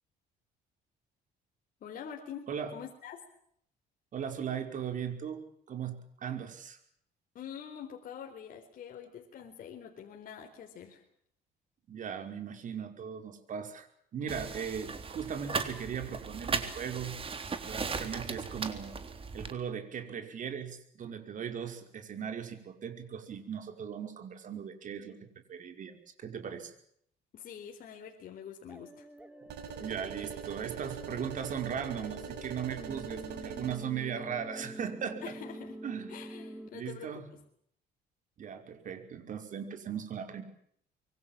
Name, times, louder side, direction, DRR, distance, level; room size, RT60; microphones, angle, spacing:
voice 1, 1.8-3.2 7.3-11.0 27.3-29.1 35.2-35.8 36.1-37.2, left 8 dB, 55° left, 2 dB, 4.1 m, -45 dB
voice 2, 4.1-6.8 11.9-13.9 14.1-17.2 17.6-19.0 19.3-25.2 25.5-26.7 29.8-35.3 35.8-36.1 36.7-37.3 38.4-40.4, right 8 dB, 50° right, 7 dB, 5.2 m, -38 dB
sound 1, 14.3-19.5, right 5 dB, 35° right, 3.6 m, -37 dB
sound 2, 28.7-36.7, right 1 dB, 10° right, 2.9 m, -46 dB
sound 3, 29.5-33.8, right 9 dB, 85° right, 7.3 m, -43 dB
25.5 x 23.5 x 7.5 m, 0.67 s
cardioid pair, 110°, 17 cm